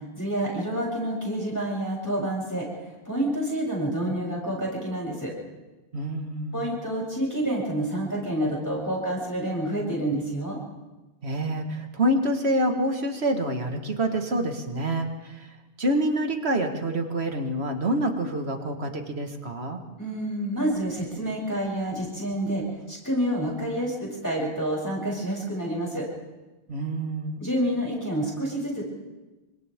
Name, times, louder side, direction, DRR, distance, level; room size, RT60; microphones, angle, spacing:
voice 1, 0.1-2.7 3.1-5.3 6.5-10.6 20.0-26.1 27.4-28.9, right 1 dB, 15° left, -4 dB, 7.9 m, -28 dB
voice 2, 5.9-6.7 11.2-15.3 15.8-19.8 26.7-27.4, right 1 dB, 75° right, 5 dB, 2.0 m, -27 dB
29.5 x 25.5 x 3.6 m, 1.1 s
omnidirectional pair, 1.1 m